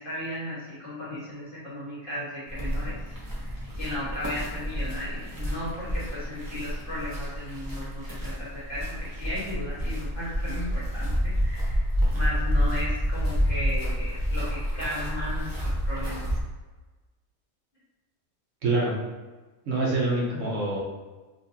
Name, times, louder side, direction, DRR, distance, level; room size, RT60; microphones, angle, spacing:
voice 1, 0.0-3.0 3.4-16.3, left 1 dB, 40° left, -9 dB, 1.3 m, -35 dB
sound 1, 2.5-16.4, equal, 20° right, 0.5 m, -29 dB
voice 2, 18.6-18.9 19.7-20.8, right 2 dB, 65° right, -4 dB, 1.1 m, -25 dB
3.9 x 2.6 x 2.7 m, 1.2 s
omnidirectional pair, 1.5 m